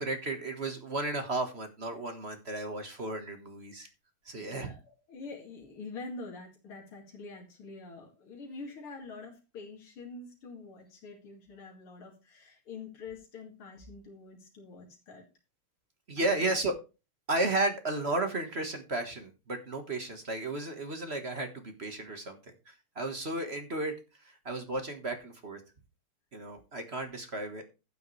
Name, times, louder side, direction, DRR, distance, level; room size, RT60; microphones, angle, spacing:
voice 1, 0.0-3.9 4.2-4.7 16.1-16.7 17.3-23.9 24.2-25.6 26.3-27.6, right 2 dB, 35° right, 6 dB, 1.5 m, -33 dB
voice 2, 4.4-15.2 16.2-16.6, left 3 dB, 85° left, 0 dB, 3.2 m, -46 dB
12.0 x 9.2 x 3.2 m, 0.30 s
omnidirectional pair, 2.3 m